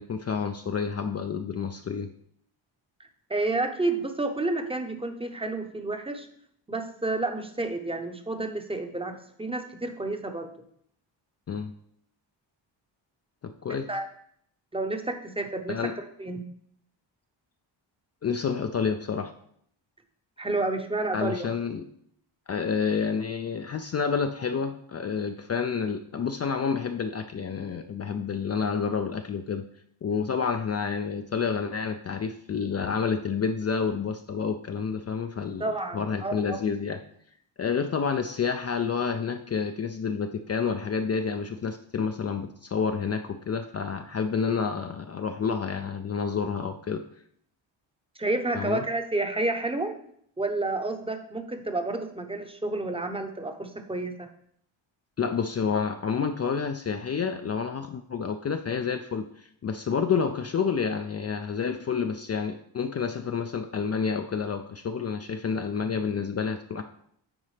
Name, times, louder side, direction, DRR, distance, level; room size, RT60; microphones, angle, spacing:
voice 1, 0.0-2.1 11.5-11.7 13.4-13.9 15.7-15.9 18.2-19.3 21.1-21.8 22.5-29.6 30.0-35.7 35.9-37.0 37.6-47.0 48.5-48.8 55.2-66.8, left 6 dB, 35° left, 6 dB, 0.4 m, -29 dB
voice 2, 3.3-6.3 6.7-10.5 13.7-14.0 14.7-16.4 20.4-21.5 35.6-36.6 48.2-49.9 50.4-54.3, right 2 dB, 10° right, 5 dB, 0.8 m, -30 dB
9.6 x 4.0 x 3.3 m, 0.67 s
cardioid pair, 80°, 47 cm